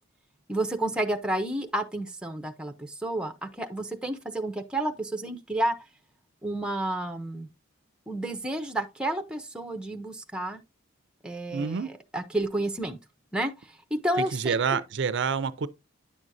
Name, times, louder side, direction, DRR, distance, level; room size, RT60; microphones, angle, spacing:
voice 1, 0.5-5.8 6.4-7.5 8.1-10.6 11.2-13.0 13.3-14.6, right 1 dB, 5° right, 0.6 m, -31 dB
voice 2, 11.5-11.9 14.3-15.7, right 6 dB, 55° right, 0.4 m, -27 dB
9.8 x 6.1 x 2.6 m
head